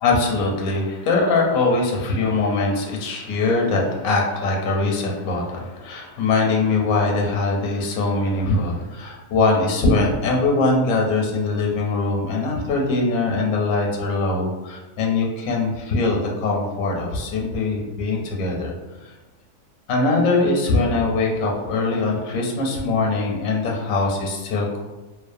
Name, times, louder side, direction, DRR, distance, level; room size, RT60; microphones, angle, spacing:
voice 1, 0.0-18.7 19.0-19.1 19.9-24.8, left 3 dB, 85° left, 0 dB, 1.0 m, -22 dB
2.6 x 2.1 x 2.5 m, 1.1 s
omnidirectional pair, 1.4 m